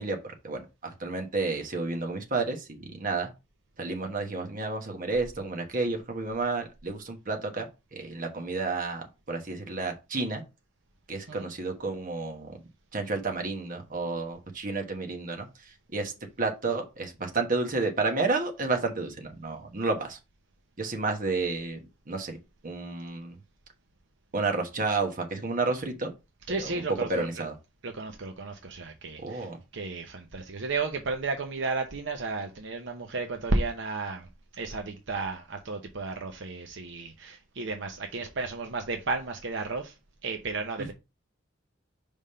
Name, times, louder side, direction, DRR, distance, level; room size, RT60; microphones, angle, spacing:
voice 1, 0.0-3.3 3.8-10.4 11.1-12.6 12.9-16.1 16.4-20.2 20.8-21.8 22.1-22.4 22.6-23.4 24.3-26.1 26.6-26.8 27.1-27.6 29.2-29.6, right 3 dB, 45° right, 1.2 m, -31 dB
voice 2, 26.5-27.3 27.8-29.5 29.7-34.3 34.6-39.9 40.2-40.9, right 3 dB, 65° right, 0.8 m, -33 dB
5.1 x 3.6 x 5.5 m
head